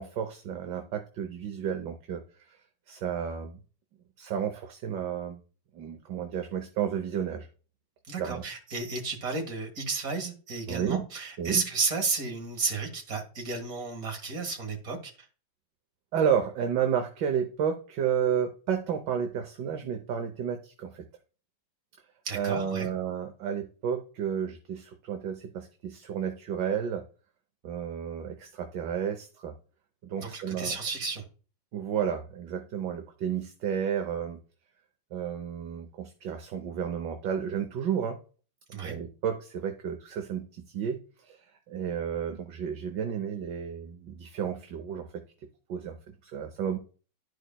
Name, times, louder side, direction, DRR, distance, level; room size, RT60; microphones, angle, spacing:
voice 1, 0.0-2.6 2.9-3.6 4.2-5.4 5.7-7.5 8.2-8.4 10.7-11.1 11.4-11.7 16.1-21.0 22.3-27.1 27.6-29.5 30.0-30.8 31.7-34.4 35.1-38.2 38.7-41.4 41.7-45.1 45.7-46.8, right 8 dB, 70° right, 1.4 m, -32 dB
voice 2, 8.1-15.1 22.3-22.9 30.2-31.2 38.7-39.0, right 4 dB, 50° right, 2.0 m, -32 dB
12.0 x 4.8 x 2.2 m
omnidirectional pair, 2.1 m